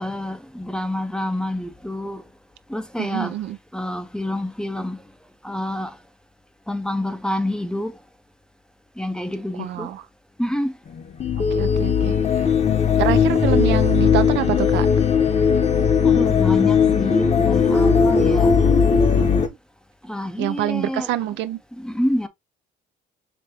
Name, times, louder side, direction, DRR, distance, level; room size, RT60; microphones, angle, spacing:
voice 1, 0.0-2.2 2.7-3.4 3.7-5.0 5.4-6.0 6.7-7.9 9.0-9.9 10.4-10.7 16.0-18.6 20.0-21.1 21.7-22.3, left 1 dB, 5° left, 0.6 m, -27 dB
voice 2, 3.0-3.6 9.6-10.0 11.4-12.4 13.0-14.9 20.4-21.6, right 13 dB, 70° right, 0.5 m, -26 dB
sound 1, 10.9-19.5, left 6 dB, 35° left, 0.9 m, -18 dB
5.0 x 3.3 x 2.8 m
cardioid pair, 115°, 19 cm